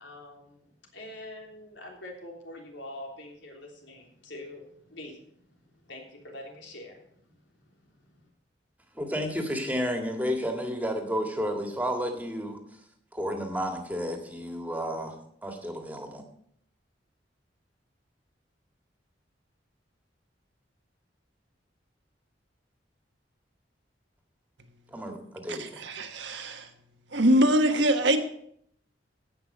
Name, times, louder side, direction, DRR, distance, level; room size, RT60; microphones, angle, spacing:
voice 1, 0.0-8.1, left 1 dB, 90° left, 0 dB, 3.3 m, -45 dB
voice 2, 9.0-12.6 13.1-16.2 24.9-25.8, equal, 10° right, 3 dB, 1.9 m, -32 dB
voice 3, 25.5-26.7 27.1-28.2, equal, 80° right, 6 dB, 1.4 m, -23 dB
16.0 x 5.8 x 6.7 m, 0.68 s
head